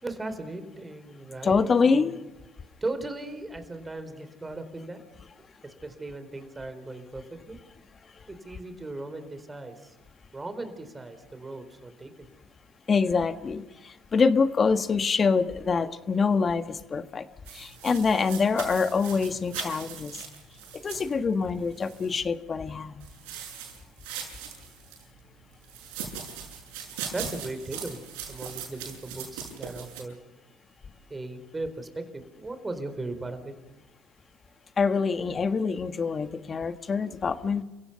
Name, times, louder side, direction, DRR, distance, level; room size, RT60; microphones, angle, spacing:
voice 1, 0.0-2.2 2.8-5.0 5.6-7.6 8.3-10.0 10.3-12.3 19.1-19.2 27.1-28.0 28.3-30.2 31.1-33.5, right 2 dB, 20° right, 9 dB, 4.2 m, -37 dB
voice 2, 1.4-2.2 12.9-13.6 14.1-17.2 17.5-20.1 20.8-23.0 34.8-37.6, left 5 dB, 35° left, 10 dB, 1.5 m, -25 dB
sound 1, 17.4-22.2 23.0-25.0 25.6-30.0, right 7 dB, 85° right, 7.1 m, -40 dB
29.5 x 16.5 x 5.8 m, 1.1 s
supercardioid pair, 75°, 0 cm